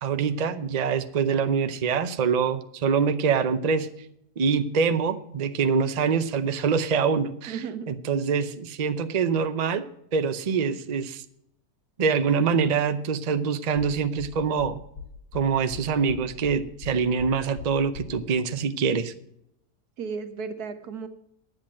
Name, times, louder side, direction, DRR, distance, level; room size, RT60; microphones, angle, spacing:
voice 1, 0.0-3.9 4.4-7.6 7.9-9.8 10.1-11.2 12.0-14.8 15.3-19.1, right 6 dB, 50° right, 10 dB, 0.5 m, -25 dB
voice 2, 7.5-7.9 20.0-21.1, right 5 dB, 75° right, 8 dB, 1.6 m, -34 dB
sound 1, 14.2-18.2, left 5 dB, 70° left, 1.7 m, -40 dB
10.5 x 8.1 x 7.4 m, 0.77 s
omnidirectional pair, 1.7 m